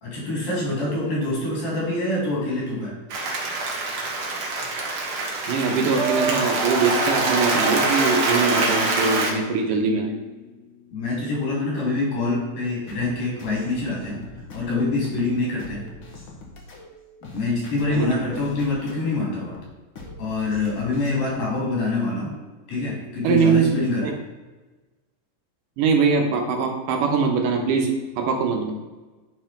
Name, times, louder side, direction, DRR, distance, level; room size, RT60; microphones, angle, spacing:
voice 1, 0.0-2.9 10.9-14.2 14.5-15.9 17.3-19.6 20.2-22.3 22.7-24.1, left 2 dB, 75° left, -4 dB, 5.0 m, -25 dB
Applause, 3.1-9.3, right 2 dB, 55° right, 1.7 m, -24 dB
voice 2, 5.5-10.1 17.8-18.4 23.2-23.7 24.0-24.1 25.8-28.7, right 5 dB, 75° right, 3 dB, 2.4 m, -22 dB
sound 1, 8.6-11.7, left 8 dB, 30° left, 1.6 m, -43 dB
sound 2, 12.9-21.5, left 2 dB, 55° left, 1.5 m, -42 dB
9.7 x 5.4 x 4.4 m, 1.2 s
omnidirectional pair, 3.9 m